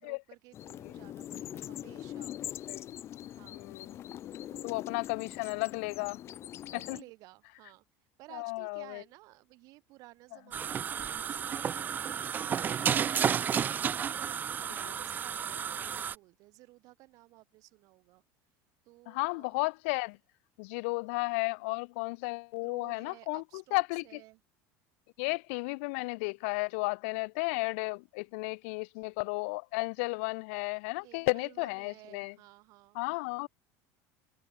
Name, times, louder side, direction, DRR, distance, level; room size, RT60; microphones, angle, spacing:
voice 1, 0.0-2.4 3.2-3.7 4.5-4.8 6.7-7.8 8.2-18.2 18.8-19.5 22.6-24.4 31.0-33.0, right 21 dB, 60° right, 6.6 m, -55 dB
sound 1, 0.5-7.0, left 12 dB, 40° left, 1.6 m, -43 dB
voice 2, 3.5-4.0 4.6-6.2 6.9-7.0 8.3-9.0 14.8-14.9 19.1-20.2 20.6-24.2 25.2-32.3 32.9-33.5, left 30 dB, 75° left, 0.4 m, -33 dB
sound 2, 10.5-16.1, right 8 dB, 25° right, 0.7 m, -32 dB
cardioid pair, 140°, 7 cm